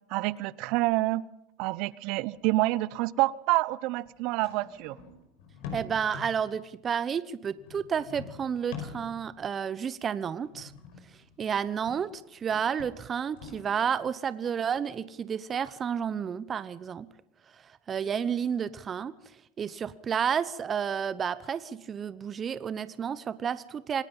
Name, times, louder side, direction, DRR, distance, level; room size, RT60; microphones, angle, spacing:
voice 1, 0.1-1.2 1.6-5.0, right 19 dB, 60° right, 20 dB, 0.8 m, -27 dB
sound 1, 2.3-2.4 2.9-3.0 4.1-6.6 7.6-9.4 10.4-12.1 12.4-13.8, left 6 dB, 70° left, 5.3 m, -45 dB
voice 2, 5.7-10.7 11.4-17.1 17.9-19.1 19.6-24.0, right 7 dB, 30° right, 16 dB, 0.8 m, -31 dB
26.5 x 19.0 x 5.5 m, 0.83 s
hypercardioid pair, 95°, 0 cm